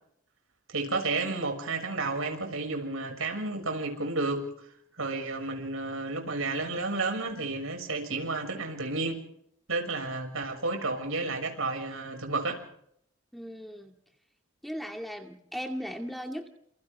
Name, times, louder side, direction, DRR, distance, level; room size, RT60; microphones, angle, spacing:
voice 1, 0.7-4.5 4.9-9.2 9.7-12.7, right 3 dB, 85° right, 4 dB, 6.5 m, -31 dB
voice 2, 13.3-13.9 14.6-16.5, equal, ahead, 3 dB, 2.3 m, -37 dB
30.0 x 28.0 x 3.6 m, 0.71 s
head